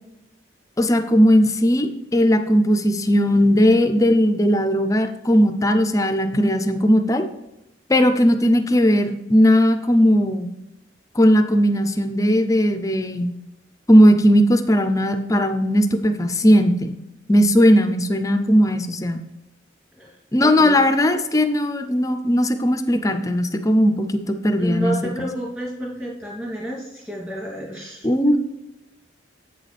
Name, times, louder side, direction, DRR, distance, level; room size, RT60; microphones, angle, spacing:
voice 1, 0.8-7.3 7.9-10.5 11.2-13.3 13.9-17.0 17.3-19.2 20.3-25.3 28.0-28.4, equal, 15° left, 8 dB, 0.4 m, -17 dB
voice 2, 20.0-20.8 24.6-28.4, right 1 dB, 15° right, -6 dB, 2.6 m, -30 dB
7.9 x 6.5 x 3.3 m, 0.94 s
head